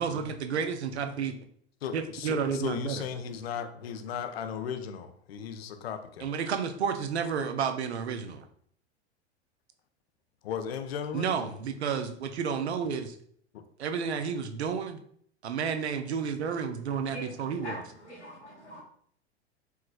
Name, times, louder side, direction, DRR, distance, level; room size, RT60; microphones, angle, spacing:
voice 1, 0.0-1.3 1.9-3.0 6.2-8.5 11.1-13.2 13.8-15.0 15.4-17.8, right 6 dB, 70° right, 0.6 m, -31 dB
voice 2, 1.8-6.3 10.4-11.4 13.5-13.6, left 7 dB, 65° left, 0.5 m, -36 dB
voice 3, 18.1-18.8, left 1 dB, 90° left, 1.5 m, -42 dB
4.6 x 3.1 x 2.2 m
figure-of-eight pair, 90°, 34 cm